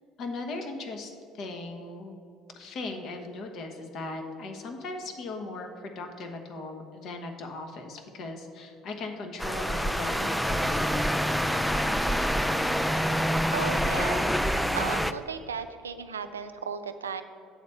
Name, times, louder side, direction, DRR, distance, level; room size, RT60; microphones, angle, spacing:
voice 1, 0.2-2.2 2.6-11.1, left 2 dB, 55° left, 4 dB, 1.0 m, -38 dB
sound 1, 9.4-15.1, equal, ahead, 0.4 m, -26 dB
voice 2, 13.5-14.4 14.7-17.2, right 6 dB, 90° right, 9 dB, 0.3 m, -35 dB
7.7 x 4.2 x 6.9 m, 2.4 s
hypercardioid pair, 60°, 0 cm